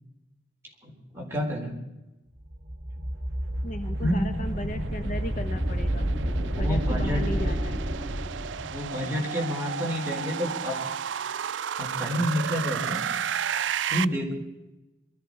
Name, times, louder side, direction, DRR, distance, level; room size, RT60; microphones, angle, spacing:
voice 1, 0.8-1.8 4.0-4.3 6.5-7.6 8.6-10.8 11.8-13.1 13.9-14.3, equal, 15° right, -2 dB, 4.1 m, -29 dB
sound 1, 2.5-9.0, right 1 dB, 50° right, 3.7 m, -29 dB
voice 2, 3.6-6.1 6.6-7.8, left 1 dB, 40° left, 7 dB, 1.0 m, -36 dB
sound 2, 4.5-14.0, right 8 dB, 75° right, 0.4 m, -33 dB
22.0 x 13.5 x 4.8 m, 1.0 s
head